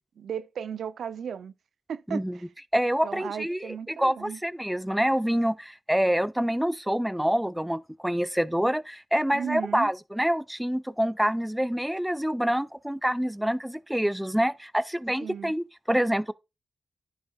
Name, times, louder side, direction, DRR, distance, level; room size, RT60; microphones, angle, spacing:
voice 1, 0.2-1.5 1.9-2.4 3.0-4.4 9.3-9.9 15.2-15.5, right 7 dB, 80° right, 0.4 m, -35 dB
voice 2, 2.1-2.4 2.7-16.3, equal, 5° right, 0.5 m, -26 dB
10.0 x 6.4 x 2.3 m
supercardioid pair, 40°, 0 cm